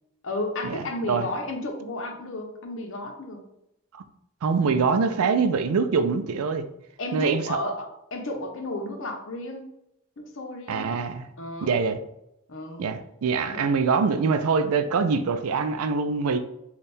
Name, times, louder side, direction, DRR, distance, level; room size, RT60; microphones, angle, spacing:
voice 1, 0.2-3.4 7.0-9.7 10.2-10.9 11.4-11.7 12.5-12.8 13.5-13.6, left 1 dB, 65° left, 3 dB, 0.7 m, -33 dB
voice 2, 4.4-6.7 7.1-7.6 10.7-11.3 11.6-12.0 12.8-16.4, right 5 dB, 90° right, 9 dB, 0.4 m, -24 dB
3.4 x 2.4 x 4.2 m, 0.83 s
head